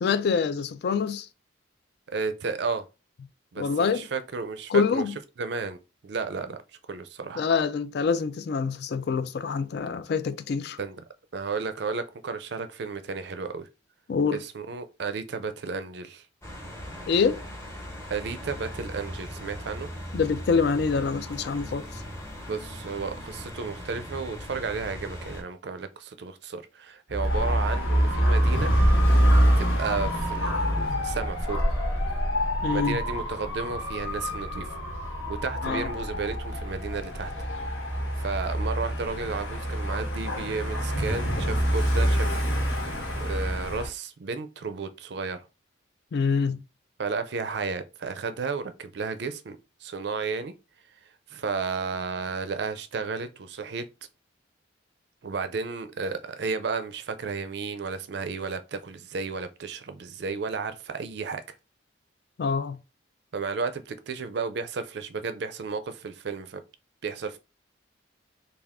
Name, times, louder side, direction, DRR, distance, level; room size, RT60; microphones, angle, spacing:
voice 1, 0.0-1.3 3.6-4.1 4.7-5.1 7.4-10.8 14.1-14.4 17.1-17.4 20.1-21.8 30.9-31.0 32.6-33.0 35.6-35.9 46.1-46.6 62.4-62.8, left 5 dB, 55° left, 0.3 m, -25 dB
voice 2, 2.1-2.9 3.5-5.0 5.4-5.8 6.0-6.6 6.9-7.4 10.8-11.0 11.3-13.7 14.3-16.2 18.1-19.9 22.5-28.7 29.6-31.6 32.7-34.8 35.3-37.3 38.2-42.4 43.2-45.5 47.0-50.5 51.3-53.9 55.2-61.4 63.3-66.6 67.0-67.4, right 4 dB, 60° right, 0.4 m, -33 dB
sound 1, 16.4-25.4, equal, 15° left, 1.0 m, -39 dB
Dog / Motorcycle, 27.1-43.9, equal, 85° left, 1.4 m, -26 dB
3.5 x 2.3 x 3.5 m
head